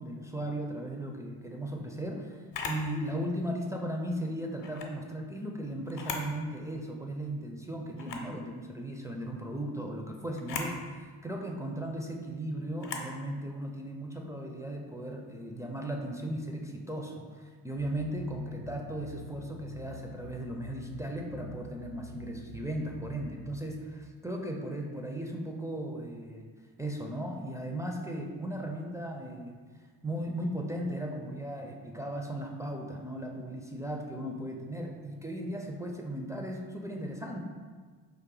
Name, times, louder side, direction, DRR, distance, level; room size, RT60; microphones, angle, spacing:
voice 1, 0.0-26.5 26.8-29.6 30.0-37.4, right 1 dB, 5° right, 0 dB, 0.4 m, -37 dB
Camera, 2.5-2.9 4.6-4.9 5.9-6.3 6.8-6.9 8.0-8.3 10.4-10.7 12.8-13.1, left 4 dB, 65° left, 0.7 m, -37 dB
sound 1, 17.8-23.5, left 2 dB, 90° right, 0.9 m, -47 dB
3.7 x 2.6 x 3.8 m, 1.5 s
hypercardioid pair, 50°, 47 cm